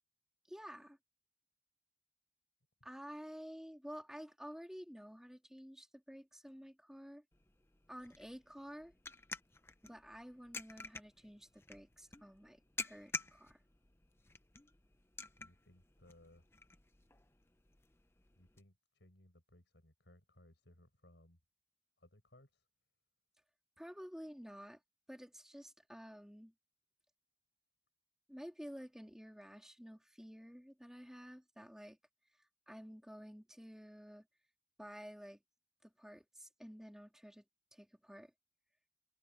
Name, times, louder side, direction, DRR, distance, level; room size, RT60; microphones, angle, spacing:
voice 1, 0.5-1.0 2.8-7.2 7.9-8.9 9.8-13.6 23.8-24.8 25.1-26.5 28.3-32.0 32.4-34.3 34.8-35.4 35.8-37.4 37.7-38.3, equal, 5° right, 3.7 m, -51 dB
sound 1, 7.3-18.6, left 3 dB, 15° left, 0.8 m, -50 dB
voice 2, 15.4-16.5 18.4-21.4 22.0-22.7, left 1 dB, 85° left, 5.5 m, -64 dB
head